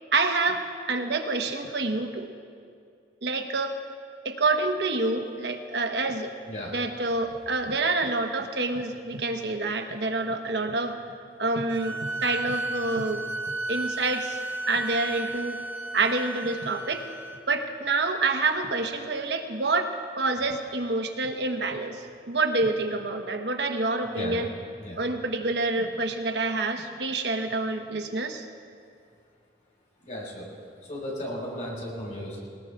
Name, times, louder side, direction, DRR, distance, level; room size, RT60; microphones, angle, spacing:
voice 1, 0.1-2.3 3.2-3.7 4.2-6.3 6.7-11.0 11.4-13.2 13.7-14.4 14.7-15.6 15.9-17.0 17.5-24.5 25.0-28.5, right 3 dB, 65° right, 5 dB, 1.1 m, -27 dB
sound 1, 11.7-17.4, right 2 dB, 10° right, 0.7 m, -34 dB
voice 2, 24.0-24.4 24.7-25.0 30.0-30.5 30.8-32.4, left 1 dB, 40° left, -4 dB, 4.9 m, -35 dB
23.5 x 20.0 x 2.4 m, 2.3 s
head